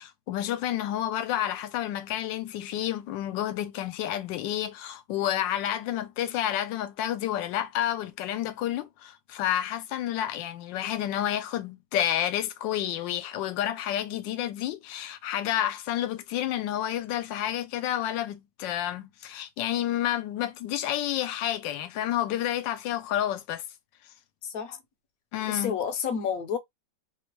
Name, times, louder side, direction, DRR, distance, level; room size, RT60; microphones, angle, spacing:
voice 1, 0.0-23.6 25.3-25.8, left 11 dB, 85° left, 1.3 m, -30 dB
voice 2, 25.5-26.6, left 7 dB, 65° left, 1.0 m, -29 dB
3.2 x 2.1 x 2.9 m
omnidirectional pair, 2.0 m